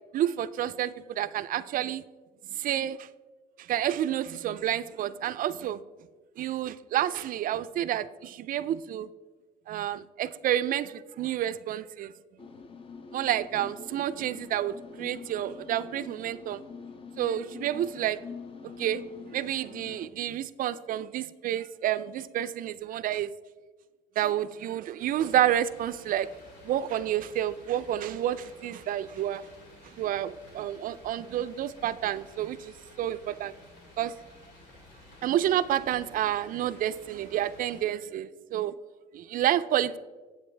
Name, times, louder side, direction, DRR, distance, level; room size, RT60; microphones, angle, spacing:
voice 1, 0.1-2.0 2.5-3.1 3.6-5.8 6.4-9.1 9.7-12.1 13.1-16.6 17.2-18.2 18.8-19.0 19.3-23.3 24.2-26.3 26.6-29.4 30.0-33.5 34.0-34.1 35.2-38.7 39.1-40.0, right 11 dB, 55° right, 14 dB, 0.4 m, -29 dB
sound 1, 12.4-20.1, left 5 dB, 35° left, 0.7 m, -45 dB
sound 2, 25.0-37.8, left 1 dB, 80° left, 2.4 m, -53 dB
9.2 x 7.9 x 3.3 m, 1.3 s
cardioid pair, 110°, 17 cm